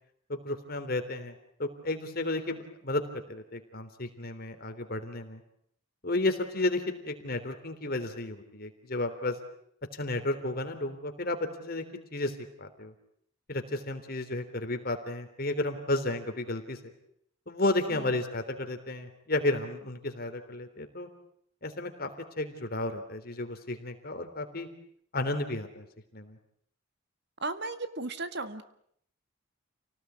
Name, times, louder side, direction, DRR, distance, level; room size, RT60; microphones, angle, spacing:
voice 1, 0.3-1.3 1.6-5.4 6.0-9.4 9.9-11.8 12.1-12.9 13.5-16.8 17.5-21.1 21.6-22.1 22.4-24.7 25.1-25.9 26.1-26.4, left 2 dB, 45° left, 6 dB, 3.6 m, -32 dB
voice 2, 27.4-28.6, right 3 dB, 55° right, 11 dB, 1.7 m, -35 dB
29.5 x 18.5 x 9.5 m, 0.69 s
head